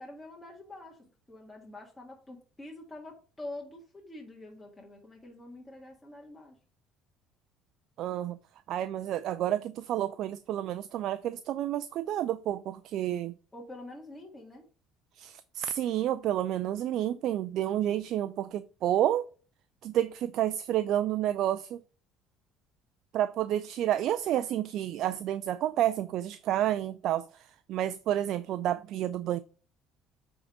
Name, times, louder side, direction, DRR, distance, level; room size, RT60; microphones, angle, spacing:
voice 1, 0.0-6.6 13.5-14.7, left 2 dB, 15° left, 1.8 m, -46 dB
voice 2, 8.0-8.4 8.7-13.3 15.1-19.2 19.8-21.8 23.1-29.4, right 12 dB, 65° right, 0.4 m, -30 dB
8.0 x 3.6 x 4.9 m
supercardioid pair, 85°, 0 cm